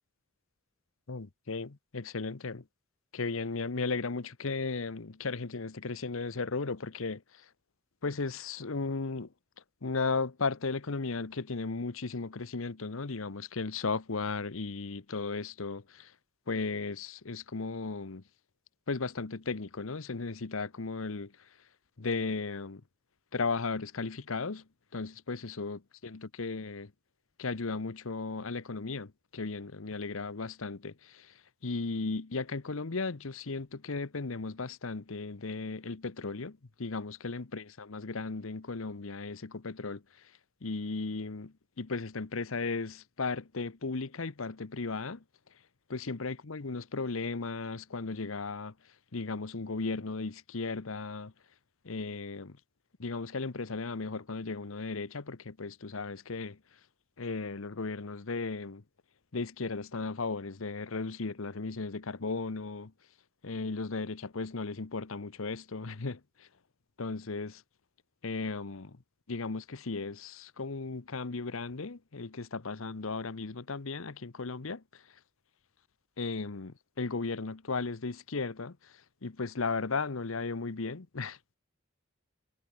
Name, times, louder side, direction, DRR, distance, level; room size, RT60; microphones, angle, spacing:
voice 1, 1.1-2.6 3.1-7.4 8.0-9.3 9.8-16.1 16.5-18.2 18.9-21.3 22.0-22.8 23.3-24.6 24.9-26.9 27.4-31.3 31.6-40.0 40.6-45.2 45.9-48.7 49.1-51.3 51.8-52.6 53.0-56.6 57.2-58.8 59.3-62.9 63.4-66.5 67.0-67.6 68.2-69.0 69.3-74.8 76.2-78.9 79.2-81.4, left 4 dB, 80° left, 1.0 m, -36 dB
head